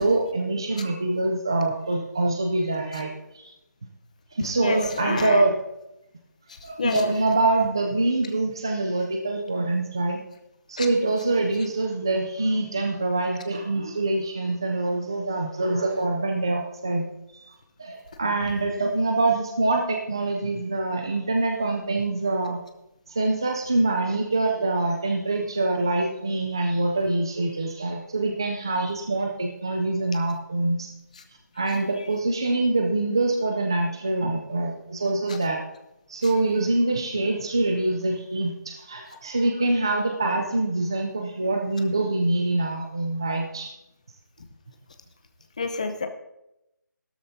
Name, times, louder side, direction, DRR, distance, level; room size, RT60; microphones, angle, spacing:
voice 1, 0.0-3.5 4.3-5.5 6.6-10.2 10.7-17.0 17.3-22.6 23.1-30.9 31.6-35.6 36.1-43.7, right 2 dB, 15° right, 3 dB, 0.4 m, -25 dB
voice 2, 4.6-5.4 6.8-7.1 10.8-10.9 45.6-46.1, left 4 dB, 20° left, 6 dB, 0.7 m, -28 dB
16.0 x 12.5 x 2.7 m, 0.88 s
figure-of-eight pair, 175°, 10 cm